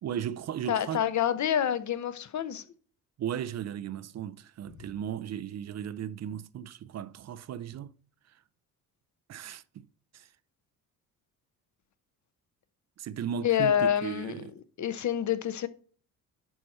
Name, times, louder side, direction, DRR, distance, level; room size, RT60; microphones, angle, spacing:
voice 1, 0.0-1.1 3.2-8.0 8.3-8.4 9.3-9.9 10.1-10.3 13.0-14.6, right 9 dB, 35° right, 0.6 m, -36 dB
voice 2, 0.7-2.6 13.4-14.5 14.8-15.7, left 9 dB, 40° left, 0.9 m, -27 dB
11.0 x 4.3 x 4.4 m
figure-of-eight pair, 45°, 45 cm